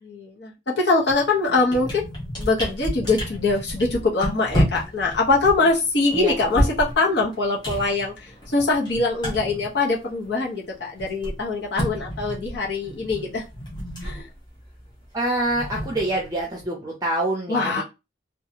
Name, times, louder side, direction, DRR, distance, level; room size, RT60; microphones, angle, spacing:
voice 1, 0.0-2.1 2.4-8.1 8.5-13.4 14.0-14.3 17.5-17.8, left 3 dB, 65° left, -2 dB, 0.9 m, -23 dB
sound 1, 1.1-1.3 1.6-10.5 10.7-16.7, equal, 25° left, 0.9 m, -30 dB
voice 2, 15.1-17.7, right 1 dB, 20° right, -1 dB, 0.5 m, -25 dB
2.7 x 2.3 x 2.7 m, 0.26 s
head